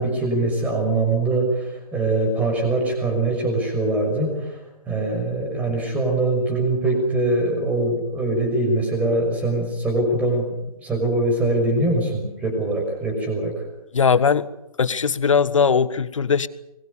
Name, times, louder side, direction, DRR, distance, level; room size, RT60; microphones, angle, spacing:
voice 1, 0.0-4.6 4.9-10.5 10.8-13.6, right 2 dB, 5° right, 3 dB, 6.0 m, -22 dB
voice 2, 13.9-14.5 14.8-16.5, left 6 dB, 55° left, 17 dB, 1.4 m, -19 dB
25.0 x 22.5 x 7.0 m, 0.93 s
figure-of-eight pair, 145°, 19 cm